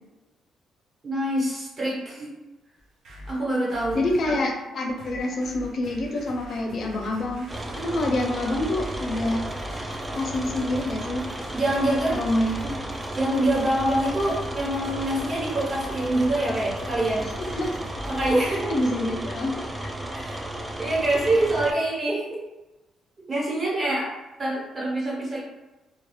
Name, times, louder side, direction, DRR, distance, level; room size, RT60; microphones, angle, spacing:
voice 1, 1.0-2.3 3.3-4.0 5.3-5.4 7.7-8.0 11.5-12.2 12.6-12.8 13.1-17.3 18.1-18.7 19.1-19.2 20.1-20.4 20.8-22.4 23.3-24.1 24.4-25.4, right 1 dB, 35° right, -5 dB, 1.2 m, -25 dB
sound 1, 2.8-4.5 5.0-18.5, right 1 dB, 70° right, 0.6 m, -42 dB
voice 2, 3.9-7.5 7.8-9.4 9.7-11.3 12.1-12.6 17.4-17.8 18.7-19.9, left 1 dB, 55° left, 1 dB, 0.5 m, -27 dB
sound 2, 7.5-21.7, right 1 dB, 15° right, 0.4 m, -34 dB
2.4 x 2.3 x 3.1 m, 1.0 s
cardioid pair, 90°, 0 cm